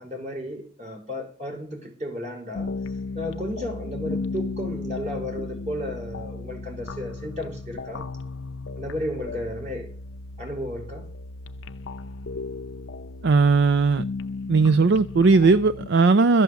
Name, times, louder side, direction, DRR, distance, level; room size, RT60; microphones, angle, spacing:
voice 1, 0.0-2.8 3.1-8.1 8.8-9.9 10.4-11.1, left 1 dB, 40° right, 4.6 m, -33 dB
sound 1, 2.5-15.9, left 3 dB, 80° left, 0.6 m, -35 dB
voice 2, 13.2-14.0 14.5-16.4, right 4 dB, 65° right, 0.5 m, -18 dB
13.0 x 7.7 x 7.1 m
head